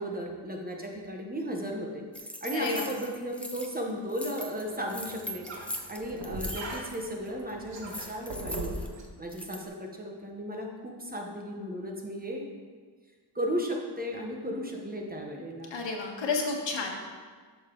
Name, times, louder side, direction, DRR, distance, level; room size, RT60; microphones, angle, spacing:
voice 1, 0.0-2.0 2.4-5.5 5.9-8.8 9.2-12.4 13.3-15.8, equal, 20° right, 1 dB, 1.0 m, -35 dB
sound 1, 2.1-3.8 4.1-7.0 7.3-7.5 7.9-9.6, equal, 5° left, 0.6 m, -40 dB
voice 2, 2.5-2.8 15.7-17.0, left 4 dB, 80° left, 0 dB, 1.6 m, -31 dB
sound 2, 4.6-9.0, right 2 dB, 85° right, 1.5 m, -40 dB
11.5 x 6.4 x 3.8 m, 1.5 s
wide cardioid pair, 180°, 43 cm